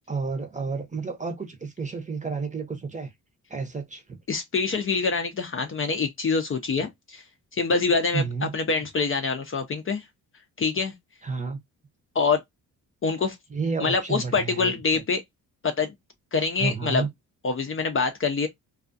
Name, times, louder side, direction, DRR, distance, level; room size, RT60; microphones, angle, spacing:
voice 1, 0.1-3.1 3.5-4.2 8.1-8.5 11.2-11.6 13.5-15.0 16.6-17.1, right 4 dB, 20° right, 0.7 m, -31 dB
voice 2, 4.3-7.2 7.5-10.0 10.6-10.9 12.1-12.4 13.0-13.4 13.8-15.2 15.6-15.9 16.3-17.1 17.4-18.5, left 4 dB, 35° left, 0.6 m, -25 dB
2.4 x 2.3 x 2.5 m
cardioid pair, 80°, 38 cm